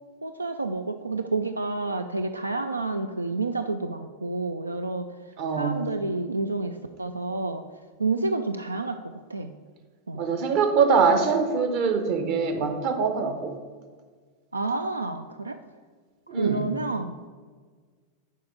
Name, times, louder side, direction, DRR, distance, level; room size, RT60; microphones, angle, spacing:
voice 1, 0.2-5.1 5.5-7.6 8.0-9.5 10.1-10.2 14.5-15.6 16.4-17.2, right 3 dB, 80° right, 8 dB, 0.3 m, -29 dB
voice 2, 5.4-5.8 10.2-13.5 16.3-16.7, right 5 dB, 45° right, 6 dB, 1.0 m, -23 dB
6.6 x 4.8 x 6.5 m, 1.5 s
figure-of-eight pair, 90°, 0 cm